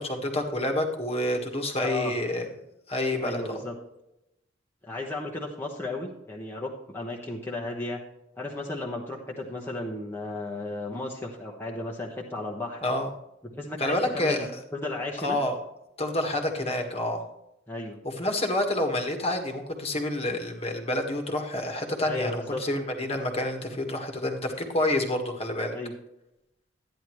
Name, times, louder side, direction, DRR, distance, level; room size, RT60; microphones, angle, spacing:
voice 1, 0.0-2.4 2.9-3.6 12.8-13.1 13.8-14.5 15.2-15.5 16.0-17.3 18.0-25.8, left 1 dB, 30° left, 3 dB, 1.6 m, -28 dB
voice 2, 1.8-2.1 3.2-3.7 4.8-8.0 8.4-12.8 13.5-14.5 14.7-15.4 17.7-18.0 22.1-22.6 25.7-25.9, left 2 dB, 10° left, -2 dB, 1.2 m, -34 dB
12.5 x 10.0 x 3.1 m, 0.86 s
head